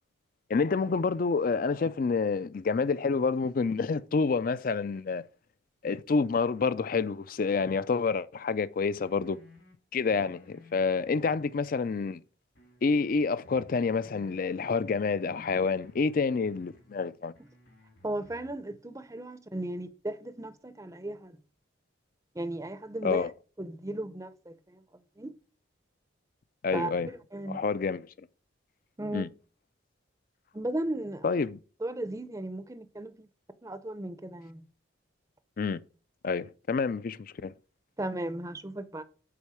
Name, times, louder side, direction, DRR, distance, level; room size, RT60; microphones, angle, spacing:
voice 1, 0.5-5.2 5.8-9.4 9.9-12.2 12.8-17.3 23.0-23.3 26.6-27.1 27.5-28.1 29.1-29.3 31.2-31.6 35.6-35.8 36.2-37.5, left 4 dB, 45° left, 0.4 m, -28 dB
sound 1, 9.0-9.7 10.1-12.2 12.5-14.5 14.9-17.0 17.3-18.6, left 2 dB, 80° left, 3.3 m, -57 dB
voice 2, 18.0-21.4 22.3-23.3 23.6-24.8 25.2-25.3 26.7-27.6 29.0-29.3 30.5-31.2 31.8-33.3 33.6-34.6 38.0-39.0, right 1 dB, 15° right, 0.5 m, -36 dB
8.5 x 4.4 x 4.9 m
head